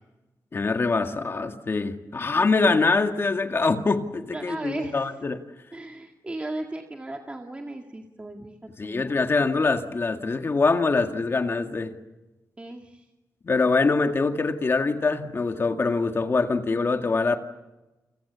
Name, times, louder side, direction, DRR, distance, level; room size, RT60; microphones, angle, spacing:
voice 1, 0.5-5.4 8.8-11.9 13.4-17.4, left 3 dB, 40° left, 6 dB, 1.9 m, -24 dB
voice 2, 4.3-5.1 5.7-8.5 8.8-9.1 12.6-13.0, right 2 dB, 20° right, 3 dB, 2.0 m, -36 dB
29.5 x 27.5 x 7.0 m, 1.1 s
wide cardioid pair, 145°, 6 cm